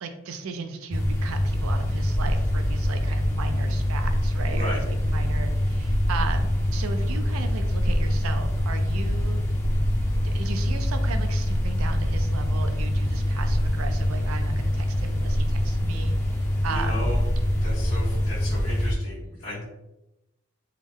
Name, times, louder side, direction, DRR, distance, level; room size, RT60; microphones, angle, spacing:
voice 1, 0.0-9.4 10.2-17.1, right 4 dB, 90° right, 7 dB, 0.4 m, -36 dB
sound 1, 0.9-18.9, left 1 dB, 15° left, 0.4 m, -24 dB
voice 2, 4.5-4.8 16.7-17.2 17.6-19.6, left 1 dB, 75° left, -10 dB, 1.4 m, -35 dB
3.5 x 2.0 x 3.5 m, 0.93 s
head